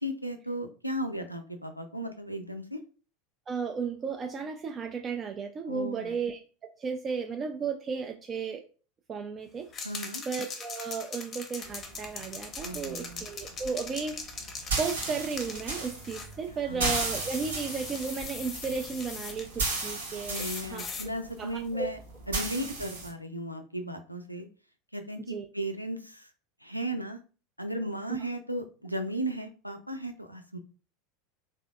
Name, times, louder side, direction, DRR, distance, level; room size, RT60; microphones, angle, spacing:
voice 1, 0.0-2.8 5.7-6.2 9.8-10.2 12.6-13.2 16.7-16.9 20.3-22.0 22.3-24.5 24.9-26.3 26.6-27.2 27.6-30.6, right 1 dB, 90° left, 6 dB, 0.4 m, -35 dB
voice 2, 3.5-8.6 9.1-9.7 10.3-14.4 14.8-20.9 21.4-21.9 25.3-25.5 28.1-28.2, right 5 dB, 25° right, 4 dB, 0.3 m, -34 dB
sound 1, 9.7-16.3 16.9-19.4 20.3-21.1, left 4 dB, 25° left, 0.6 m, -41 dB
sound 2, 11.6-23.1, right 3 dB, 70° right, 0.8 m, -36 dB
3.3 x 2.5 x 2.3 m, 0.37 s
figure-of-eight pair, 80°, 0 cm